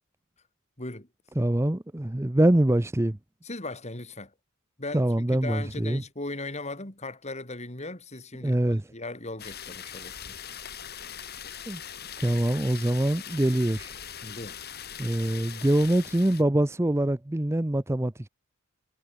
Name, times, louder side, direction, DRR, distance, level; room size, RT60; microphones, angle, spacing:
voice 1, 0.8-1.1 3.4-4.3 4.8-10.4 14.2-14.6, left 2 dB, 30° left, 3.4 m, -38 dB
voice 2, 1.4-3.2 4.9-6.0 8.4-8.8 11.7-11.8 12.2-13.9 15.0-18.3, right 1 dB, 10° right, 0.6 m, -24 dB
sound 1, 9.4-16.4, left 9 dB, 45° left, 7.6 m, -41 dB
head